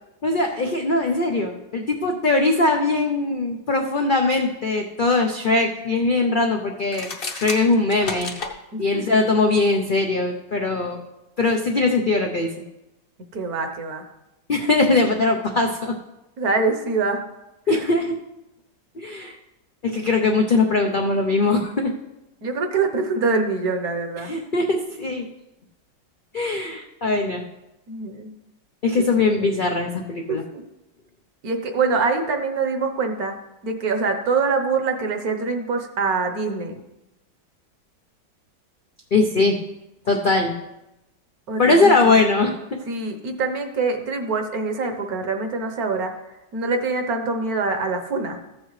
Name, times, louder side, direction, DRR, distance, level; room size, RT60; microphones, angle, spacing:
voice 1, 0.2-7.1 7.4-8.3 8.8-11.0 11.4-12.5 14.5-15.9 17.7-18.2 19.0-19.4 19.8-21.9 24.3-25.3 26.3-27.4 28.8-30.4 39.1-39.6 40.1-40.5 41.6-42.5, left 3 dB, 70° left, 2 dB, 0.4 m, -21 dB
sound 1, 6.8-8.5, left 4 dB, 40° left, 0.9 m, -31 dB
voice 2, 8.7-9.1 13.3-14.0 16.4-17.2 17.7-17.9 22.4-24.3 27.9-28.3 29.2-29.5 30.3-30.6 31.4-33.3 33.6-36.8 41.5-42.3 42.9-46.1 46.5-48.4, right 4 dB, 60° right, 5 dB, 1.4 m, -24 dB
14.5 x 7.5 x 3.2 m, 0.93 s
omnidirectional pair, 1.9 m